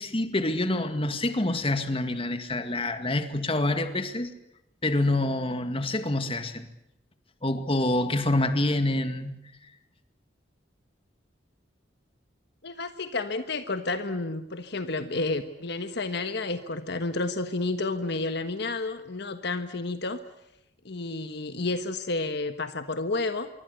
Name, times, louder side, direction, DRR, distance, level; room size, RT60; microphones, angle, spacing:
voice 1, 0.0-4.3 4.8-6.7 7.4-9.4, left 2 dB, 30° left, 2.1 m, -27 dB
voice 2, 12.6-20.2 20.8-23.5, left 3 dB, 65° left, 1.4 m, -30 dB
26.0 x 23.5 x 8.1 m
head